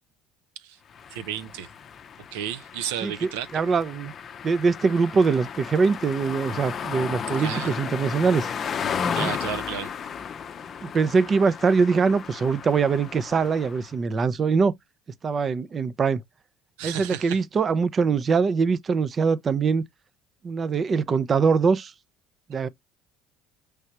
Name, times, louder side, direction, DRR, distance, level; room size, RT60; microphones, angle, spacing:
sound 1, 0.9-13.9, left 7 dB, 40° left, 0.6 m, -34 dB
voice 1, 1.1-1.7 2.3-3.5 7.4-7.8 9.2-9.9 16.8-17.4, right 10 dB, 85° right, 0.5 m, -32 dB
voice 2, 3.0-4.1 4.4-8.5 9.1-9.3 10.8-14.7 15.2-16.2 16.8-19.8 20.4-21.9 22.5-22.7, right 5 dB, 35° right, 0.5 m, -23 dB
4.6 x 3.3 x 2.8 m
supercardioid pair, 95°, 0 cm